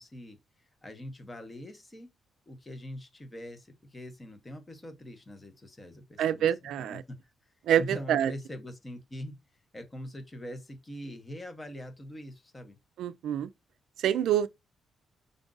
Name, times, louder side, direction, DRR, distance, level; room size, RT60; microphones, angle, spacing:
voice 1, 0.0-2.1 2.5-9.4 9.7-12.8, equal, 15° left, 1.0 m, -43 dB
voice 2, 6.2-7.0 7.7-8.3 13.0-13.5 14.0-14.5, right 10 dB, 85° right, 0.3 m, -26 dB
5.2 x 2.5 x 3.8 m
cardioid pair, 125°, 0 cm